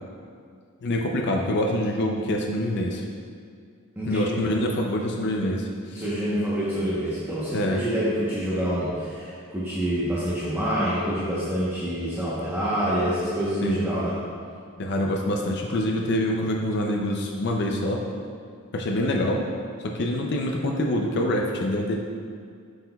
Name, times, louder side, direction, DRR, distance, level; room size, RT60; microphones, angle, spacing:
voice 1, 0.8-3.0 4.1-6.0 7.5-7.8 13.6-13.8 14.8-18.0 18.7-19.4 19.8-22.0, left 1 dB, 50° left, 1 dB, 0.5 m, -25 dB
voice 2, 4.0-4.4 6.0-14.2, equal, 10° right, -9 dB, 0.9 m, -26 dB
7.8 x 6.4 x 2.3 m, 2.2 s
head